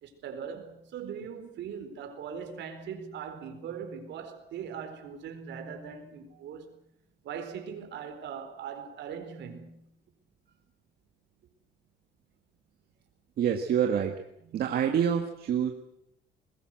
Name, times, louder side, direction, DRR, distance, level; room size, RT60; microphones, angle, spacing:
voice 1, 0.0-6.7 7.2-9.8, right 7 dB, 70° right, 4.5 m, -40 dB
voice 2, 13.4-14.1 14.5-15.7, right 8 dB, 55° right, 1.9 m, -26 dB
22.0 x 21.0 x 7.8 m
cardioid pair, 170°, 19 cm